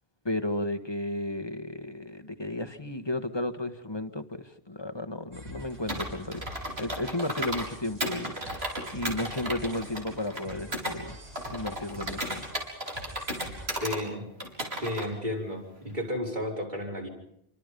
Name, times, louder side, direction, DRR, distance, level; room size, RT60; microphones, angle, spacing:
voice 1, 0.2-6.4 6.8-8.3 8.6-11.2 11.5-12.5, left 1 dB, 25° left, 9 dB, 1.5 m, -33 dB
sound 1, 5.3-13.8, equal, 70° right, 6.1 m, -46 dB
Computer keyboard, 5.9-7.7 8.0-11.0 11.4-14.0 14.4-15.1, equal, 90° right, 5.3 m, -34 dB
voice 2, 13.8-14.3 14.8-17.1, left 1 dB, 50° right, -1 dB, 5.8 m, -32 dB
28.5 x 25.0 x 5.3 m, 0.77 s
omnidirectional pair, 1.0 m